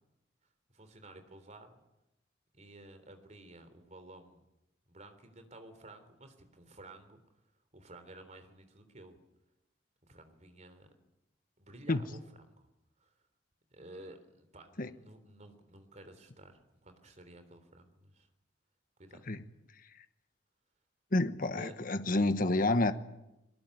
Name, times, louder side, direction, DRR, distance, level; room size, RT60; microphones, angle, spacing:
voice 1, 0.7-1.8 2.5-4.4 4.9-7.2 7.7-9.2 10.0-10.9 11.6-12.7 13.0-13.1 13.7-18.3 19.0-19.2 21.5-21.7, right 2 dB, 40° right, 9 dB, 3.5 m, -53 dB
voice 2, 21.1-22.9, left 2 dB, 50° left, 10 dB, 1.2 m, -29 dB
22.0 x 20.0 x 9.8 m, 0.90 s
head